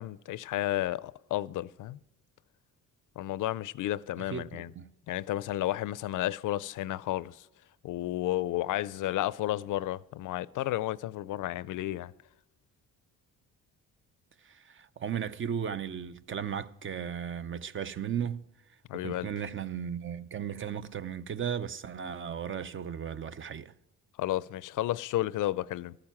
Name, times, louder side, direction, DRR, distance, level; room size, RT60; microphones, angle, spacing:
voice 1, 0.0-2.0 3.2-4.7 5.1-7.3 7.8-12.1 18.9-19.3 24.2-26.0, left 14 dB, 65° left, 0.5 m, -32 dB
voice 2, 4.3-4.9 14.4-18.4 18.9-23.7, right 8 dB, 35° right, 0.5 m, -36 dB
13.5 x 8.8 x 5.9 m
cardioid pair, 110°, 33 cm